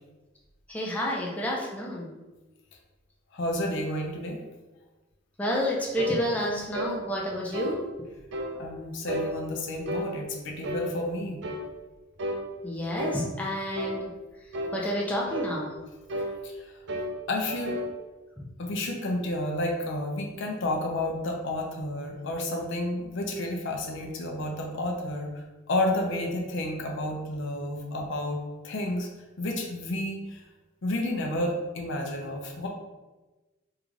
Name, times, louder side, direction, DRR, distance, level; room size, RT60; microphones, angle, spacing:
voice 1, 0.7-2.2 5.4-7.8 12.6-14.1 14.7-15.7, equal, 5° left, -4 dB, 0.5 m, -29 dB
voice 2, 3.3-4.4 8.6-11.4 16.4-16.7 17.3-17.8 18.6-25.3 25.7-29.1 29.4-30.4 30.8-32.7, left 1 dB, 65° left, 1 dB, 0.6 m, -31 dB
sound 1, 6.0-6.2 6.7-7.0 7.5-7.8 8.3-8.5 9.1-9.3 9.9-10.1 10.6-10.9 11.4-11.7 12.2-12.4 13.0-13.2 13.7-14.0 14.5-14.8 15.3-15.5 16.1-16.3 16.9-17.1 17.5-17.9, equal, 60° right, 0.5 m, -32 dB
3.7 x 2.4 x 3.2 m, 1.2 s
head